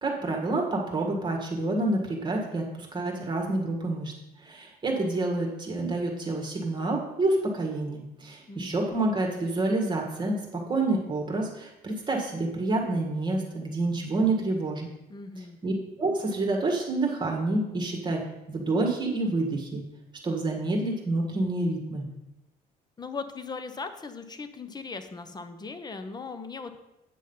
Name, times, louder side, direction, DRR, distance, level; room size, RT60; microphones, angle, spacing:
voice 1, 0.0-4.1 4.4-14.9 15.6-15.7 16.0-19.8 20.2-22.0, right 2 dB, 25° right, 1 dB, 1.7 m, -28 dB
voice 2, 8.5-8.8 15.1-15.6 23.0-26.8, left 4 dB, 25° left, 10 dB, 0.9 m, -38 dB
9.2 x 6.3 x 5.5 m, 0.92 s
cardioid pair, 110°, 17 cm